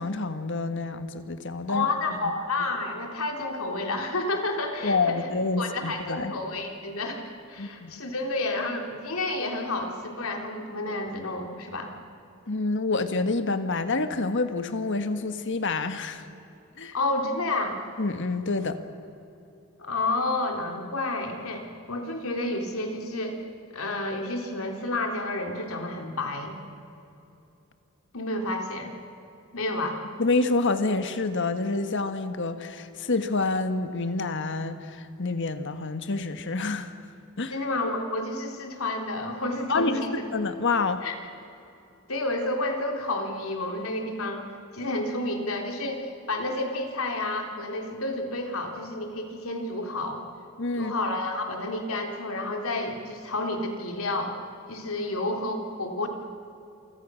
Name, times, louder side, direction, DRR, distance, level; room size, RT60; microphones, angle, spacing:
voice 1, 0.0-1.9 4.8-6.3 7.6-8.0 12.5-16.3 16.8-17.0 18.0-18.8 30.2-36.9 37.4-37.5 39.7-40.0 40.3-41.0 50.6-50.9, left 3 dB, 60° left, 9 dB, 1.5 m, -27 dB
voice 2, 1.7-5.2 5.6-11.9 16.9-17.8 19.8-23.4 23.7-26.6 28.1-28.9 29.5-30.0 37.5-40.2 41.0-41.1 42.1-44.4 44.7-50.2 50.8-54.4 54.7-56.1, left 2 dB, 75° left, 3 dB, 3.6 m, -30 dB
28.5 x 25.0 x 6.4 m, 2.8 s
head